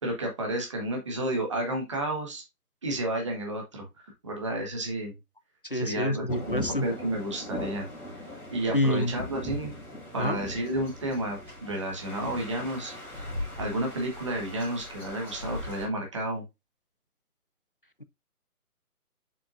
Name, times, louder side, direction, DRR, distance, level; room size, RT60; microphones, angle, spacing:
voice 1, 0.0-2.4 2.8-3.8 4.2-5.1 5.7-7.9 8.5-9.7 10.1-12.9 13.6-16.4, right 1 dB, 20° right, 1.3 m, -31 dB
voice 2, 5.6-6.8 8.7-9.1 10.2-10.4, left 1 dB, 40° left, 0.4 m, -27 dB
sound 1, 6.3-15.8, left 1 dB, 5° right, 2.0 m, -39 dB
7.3 x 5.5 x 2.5 m
hypercardioid pair, 175°, 45 cm